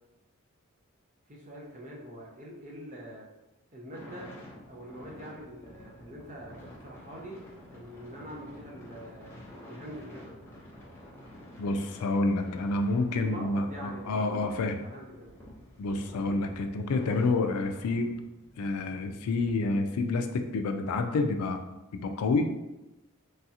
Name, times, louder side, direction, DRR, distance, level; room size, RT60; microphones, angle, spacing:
voice 1, 1.3-3.3 3.7-4.3 4.7-7.4 7.7-9.3 9.6-10.3 13.1-15.3, right 1 dB, 35° right, -2 dB, 0.6 m, -44 dB
sound 1, 3.9-19.5, left 1 dB, 10° left, 0.6 m, -49 dB
voice 2, 11.6-14.7 15.8-18.2 18.6-21.6 21.9-22.5, left 3 dB, 85° left, 6 dB, 0.3 m, -28 dB
3.2 x 2.4 x 2.7 m, 0.97 s
head